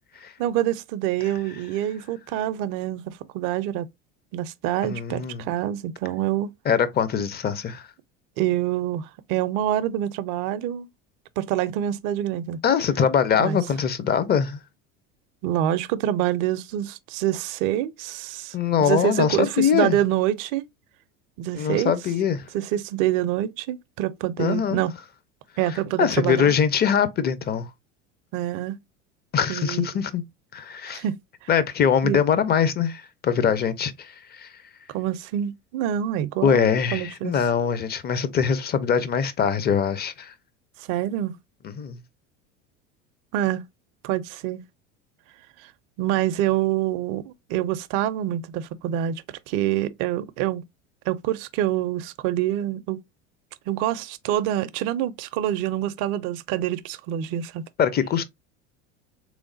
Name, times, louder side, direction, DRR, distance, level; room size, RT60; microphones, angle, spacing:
voice 1, 0.4-3.9 4.3-6.5 8.4-10.9 11.4-12.6 13.4-13.6 15.4-18.6 18.8-20.6 21.4-21.9 22.5-24.9 25.6-26.6 28.3-28.8 29.5-29.9 30.9-31.5 32.0-32.2 34.9-37.4 40.8-41.4 43.3-43.6 44.0-44.6 45.6-45.7 46.0-50.6 51.1-53.0 53.7-57.6, right 12 dB, 55° right, 0.5 m, -26 dB
voice 2, 4.8-5.5 6.7-7.9 12.6-14.6 18.5-20.0 21.6-22.5 24.4-24.8 26.0-27.7 29.3-30.2 30.5-31.0 31.5-34.5 36.4-40.3 41.8-42.0 57.8-58.2, left 7 dB, 25° left, 0.5 m, -22 dB
3.4 x 3.1 x 2.5 m
hypercardioid pair, 80°, 38 cm